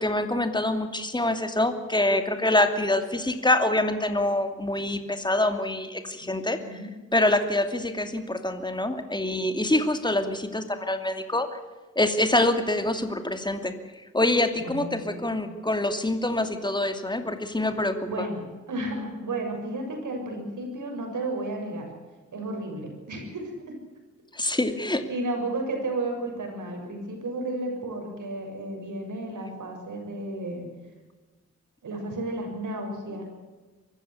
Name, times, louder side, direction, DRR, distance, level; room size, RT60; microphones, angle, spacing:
voice 1, 0.0-6.6 7.1-11.5 12.0-18.3 24.3-25.0, left 1 dB, 15° left, 8 dB, 2.6 m, -25 dB
voice 2, 6.6-6.9 14.6-15.3 17.7-21.9 22.3-23.8 24.7-24.8 25.1-30.7 31.8-33.3, right 2 dB, 90° right, 3 dB, 6.9 m, -33 dB
24.0 x 14.5 x 8.3 m, 1.3 s
wide cardioid pair, 80°, 30 cm